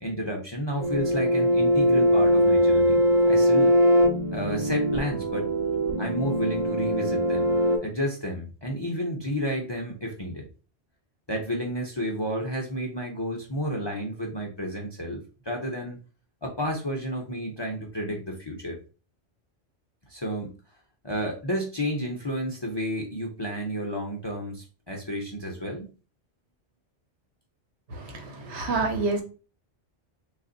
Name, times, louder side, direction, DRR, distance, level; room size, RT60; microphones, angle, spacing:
voice 1, 0.0-3.7 4.3-5.5 6.0-7.6 7.8-10.5 11.3-16.0 16.4-18.8 20.1-20.5 21.0-25.9, equal, 30° left, 1 dB, 0.5 m, -31 dB
sound 1, 0.8-7.8, equal, 40° right, 0.6 m, -22 dB
voice 2, 27.9-29.2, right 3 dB, 70° right, 5 dB, 1.0 m, -28 dB
3.3 x 2.4 x 3.8 m, 0.34 s
omnidirectional pair, 1.2 m